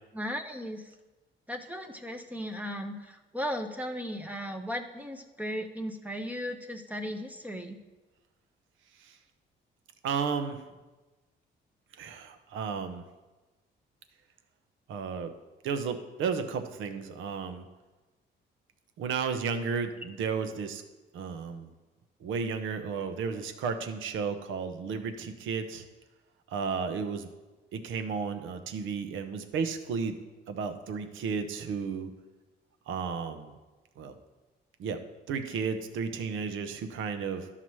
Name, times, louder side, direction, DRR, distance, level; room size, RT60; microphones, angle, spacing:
voice 1, 0.1-0.8 1.5-7.8, equal, 10° right, 4 dB, 0.7 m, -36 dB
voice 2, 10.0-10.6 11.9-13.0 14.9-15.3 15.6-17.7 19.0-20.8 21.1-21.7 22.2-25.8 26.5-27.3 27.7-30.2 30.5-32.1 32.9-33.6 34.0-34.1 34.8-35.0 35.3-37.5, right 5 dB, 80° right, 8 dB, 0.8 m, -33 dB
12.0 x 5.8 x 3.1 m, 1.2 s
cardioid pair, 90°, 20 cm